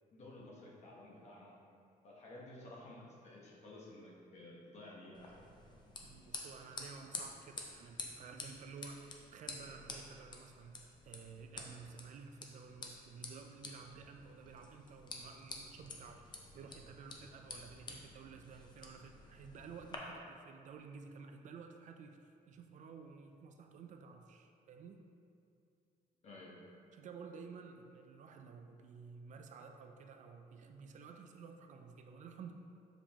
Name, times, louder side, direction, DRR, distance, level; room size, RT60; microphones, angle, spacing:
voice 1, 0.1-1.6 2.0-5.5 26.2-26.5, left 1 dB, 45° left, -4 dB, 1.2 m, -53 dB
sound 1, 5.1-20.0, left 3 dB, 30° left, 0.6 m, -50 dB
voice 2, 6.0-25.1 26.9-32.5, right 5 dB, 50° right, 5 dB, 0.4 m, -53 dB
7.1 x 5.1 x 2.9 m, 2.5 s
cardioid pair, 165°, 16 cm